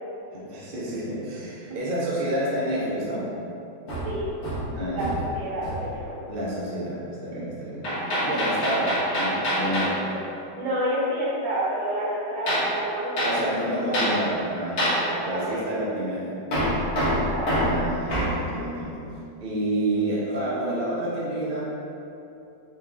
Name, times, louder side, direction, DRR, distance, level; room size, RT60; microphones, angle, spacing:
voice 1, 0.3-3.3 4.7-5.2 6.3-7.9 8.2-10.0 13.2-16.3 17.5-19.1 19.4-21.6, right 1 dB, 50° right, -6 dB, 0.6 m, -29 dB
Hammer, 3.9-5.3 5.6-5.9 7.8-10.0 12.5-12.7 13.2-13.4 13.9-14.2 14.8-15.0 16.5-18.4, equal, 50° left, 1.3 m, -25 dB
voice 2, 5.3-6.2 10.5-13.5 13.8-14.1 14.9-15.9 17.1-17.8, equal, 90° right, -7 dB, 1.8 m, -30 dB
4.5 x 2.5 x 3.4 m, 2.8 s
omnidirectional pair, 2.1 m